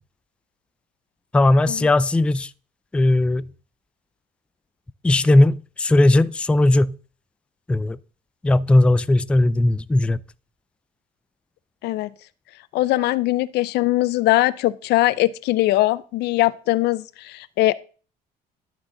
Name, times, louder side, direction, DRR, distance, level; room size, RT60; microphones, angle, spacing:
voice 1, 1.3-2.5 2.9-3.5 5.0-6.9 7.7-8.0 8.4-10.2, left 2 dB, 5° left, 0.3 m, -17 dB
voice 2, 12.7-17.7, left 17 dB, 80° left, 0.5 m, -21 dB
11.5 x 6.2 x 3.7 m
cardioid pair, 110°, 17 cm